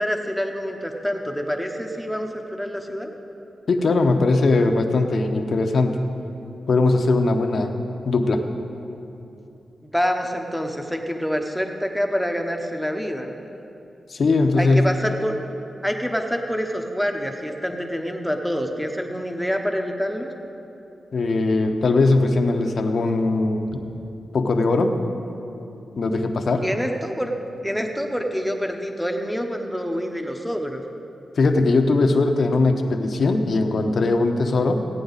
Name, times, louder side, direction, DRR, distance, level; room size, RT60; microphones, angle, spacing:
voice 1, 0.0-3.1 9.8-13.3 14.6-15.3 15.8-20.3 26.6-27.3 27.6-30.8, equal, ahead, 3 dB, 0.9 m, -26 dB
voice 2, 3.7-6.0 6.7-7.7 8.1-8.4 14.1-14.9 21.1-23.8 24.3-25.0 26.0-26.6 31.4-34.8, left 3 dB, 55° left, 5 dB, 0.9 m, -20 dB
16.5 x 9.2 x 4.0 m, 2.8 s
wide cardioid pair, 120°, 0 cm